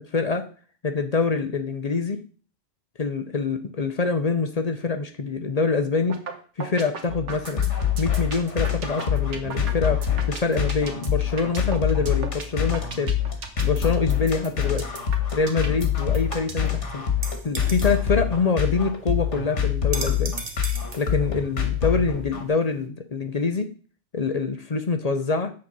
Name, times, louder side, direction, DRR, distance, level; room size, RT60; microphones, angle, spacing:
voice 1, 0.1-0.4 0.8-2.2 3.0-6.2 6.6-13.1 13.6-14.8 15.3-17.0 17.4-20.3 21.0-23.7 24.1-25.5, left 4 dB, 40° left, 7 dB, 0.7 m, -25 dB
sound 1, 6.1-6.3 6.6-16.7, right 5 dB, 75° right, 1.4 m, -36 dB
sound 2, 7.1-22.5, left 9 dB, 75° left, 1.8 m, -25 dB
sound 3, 16.7-22.9, right 4 dB, 40° right, 1.0 m, -39 dB
7.6 x 4.2 x 6.0 m, 0.40 s
omnidirectional pair, 1.2 m